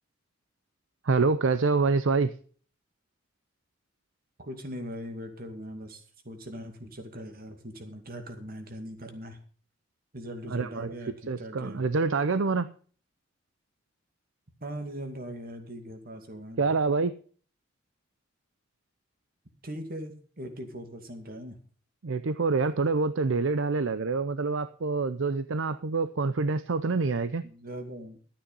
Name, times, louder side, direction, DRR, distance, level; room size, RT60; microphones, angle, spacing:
voice 1, 1.0-2.3 10.5-10.9 11.3-12.7 16.6-17.1 22.0-27.4, right 4 dB, 75° right, 13 dB, 0.6 m, -26 dB
voice 2, 4.4-9.4 10.1-11.9 14.6-16.7 19.6-21.6 27.4-28.2, equal, 50° right, 6 dB, 2.4 m, -40 dB
13.0 x 8.6 x 5.4 m, 0.43 s
head